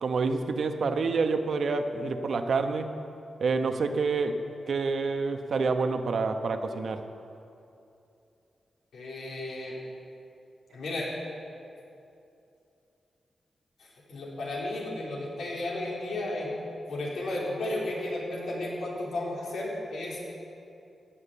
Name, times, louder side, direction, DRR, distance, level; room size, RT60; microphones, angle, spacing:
voice 1, 0.0-2.9 3.4-4.4 4.7-7.0, right 4 dB, 65° right, 7 dB, 1.0 m, -28 dB
voice 2, 8.9-9.8 10.7-11.1 13.8-16.5 16.9-20.2, left 1 dB, 85° left, -5 dB, 3.8 m, -33 dB
17.0 x 7.3 x 8.3 m, 2.7 s
wide cardioid pair, 105°, 0 cm